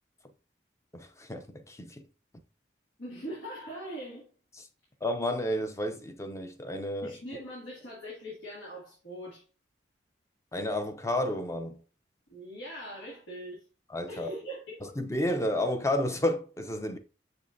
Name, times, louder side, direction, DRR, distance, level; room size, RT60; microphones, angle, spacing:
voice 1, 0.9-2.1 5.0-7.1 10.5-11.8 13.9-14.3 14.8-17.0, left 1 dB, 15° left, 0.6 m, -31 dB
voice 2, 3.0-4.3 7.0-9.4 12.3-13.6 14.1-15.0, equal, 80° left, 2.2 m, -41 dB
6.9 x 5.3 x 2.7 m
head